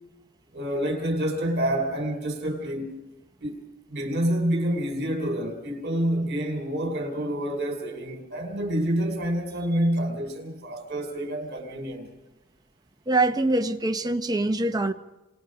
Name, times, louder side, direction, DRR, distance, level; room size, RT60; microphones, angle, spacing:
voice 1, 0.5-3.0 3.4-3.6 3.9-12.1, right 1 dB, 50° right, 4.5 m, -28 dB
voice 2, 13.1-14.9, right 2 dB, 20° right, 1.0 m, -24 dB
29.0 x 27.0 x 5.2 m
head